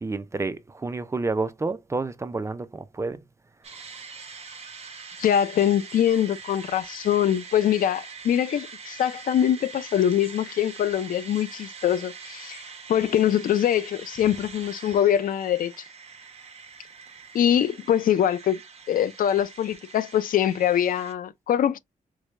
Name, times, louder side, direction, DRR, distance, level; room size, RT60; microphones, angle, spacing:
voice 1, 0.0-3.2, right 3 dB, 20° right, 0.4 m, -29 dB
sound 1, 3.6-21.1, right 5 dB, 45° right, 1.0 m, -43 dB
voice 2, 5.2-12.6 12.9-15.7 17.3-18.6 18.9-21.8, left 10 dB, 75° left, 0.4 m, -23 dB
4.6 x 2.1 x 2.4 m
wide cardioid pair, 135°, 14 cm